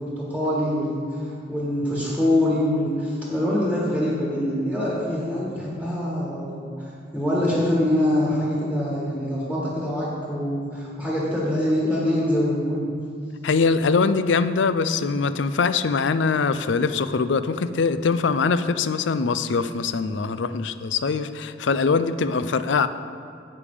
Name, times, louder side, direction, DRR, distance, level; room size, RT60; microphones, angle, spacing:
voice 1, 0.0-12.9, left 1 dB, 10° left, -6 dB, 1.7 m, -24 dB
voice 2, 13.4-22.9, left 4 dB, 80° left, 12 dB, 0.5 m, -22 dB
15.5 x 5.4 x 5.0 m, 2.3 s
head